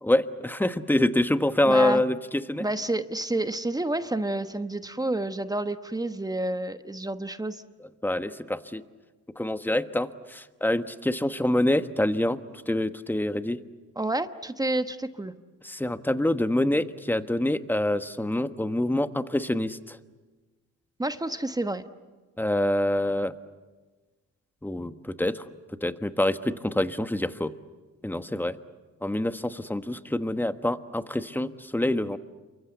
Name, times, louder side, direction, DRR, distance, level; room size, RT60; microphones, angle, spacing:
voice 1, 0.0-2.6 8.0-8.8 9.4-12.4 12.7-13.6 15.6-20.0 22.4-23.3 24.6-25.4 25.8-27.5 28.0-28.6 29.0-32.2, left 1 dB, 5° left, 10 dB, 1.3 m, -26 dB
voice 2, 1.6-2.0 2.6-7.6 14.0-15.3 21.0-21.8, right 1 dB, 10° right, 10 dB, 1.2 m, -29 dB
28.5 x 24.0 x 8.1 m, 1.3 s
cardioid pair, 90°, 30 cm